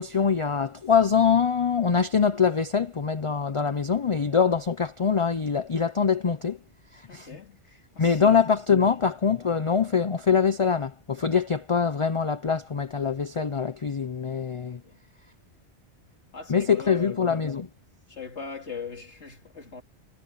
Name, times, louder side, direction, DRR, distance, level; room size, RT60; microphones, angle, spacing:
voice 1, 0.0-6.6 7.1-7.3 8.0-14.8 16.5-17.7, left 6 dB, 35° left, 0.6 m, -24 dB
voice 2, 7.1-8.4 8.8-9.0 14.8-15.0 16.3-17.2 18.1-19.8, left 5 dB, 85° left, 2.8 m, -41 dB
omnidirectional pair, 1.1 m